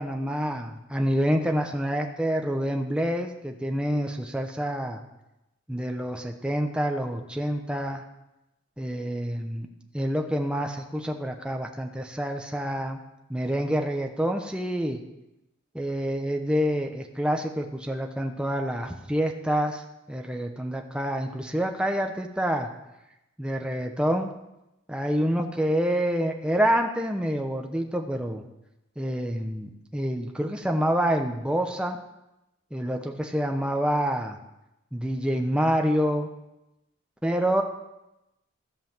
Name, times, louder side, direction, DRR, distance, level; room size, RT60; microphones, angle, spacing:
voice 1, 0.0-5.0 5.7-8.0 8.8-9.7 9.9-13.0 13.3-15.0 15.7-19.8 20.1-22.7 23.4-24.3 24.9-28.4 29.0-32.0 32.7-34.4 34.9-36.3 37.2-37.6, equal, 5° right, 3 dB, 0.9 m, -27 dB
15.5 x 5.7 x 7.2 m, 0.92 s
head